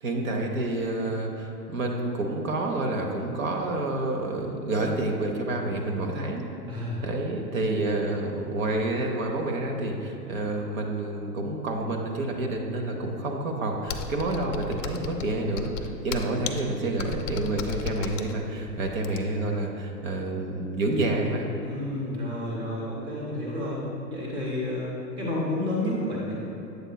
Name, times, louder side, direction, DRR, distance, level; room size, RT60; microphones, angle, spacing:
voice 1, 0.0-6.5 7.0-21.5, right 2 dB, 55° right, 2 dB, 0.8 m, -29 dB
voice 2, 6.7-7.0 21.6-23.8 24.1-26.3, left 1 dB, 10° right, -5 dB, 0.8 m, -30 dB
Computer keyboard, 13.9-19.5, left 5 dB, 50° left, 0.5 m, -35 dB
8.0 x 6.9 x 2.2 m, 2.8 s
hypercardioid pair, 135°, 49 cm